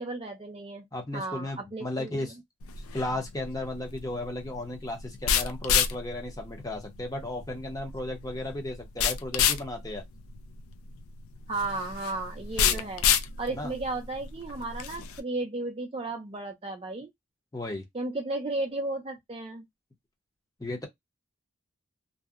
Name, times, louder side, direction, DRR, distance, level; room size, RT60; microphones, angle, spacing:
voice 1, 0.0-0.8 1.1-2.3 11.5-13.1 13.4-17.1 17.9-19.7, right 2 dB, 25° right, 0.4 m, -34 dB
voice 2, 0.9-2.4 2.9-10.0 12.6-12.9 13.5-13.7 17.5-17.8 20.6-20.9, left 1 dB, 15° left, 0.6 m, -35 dB
sound 1, 2.6-15.2, left 8 dB, 85° left, 0.4 m, -30 dB
2.6 x 2.0 x 2.4 m
head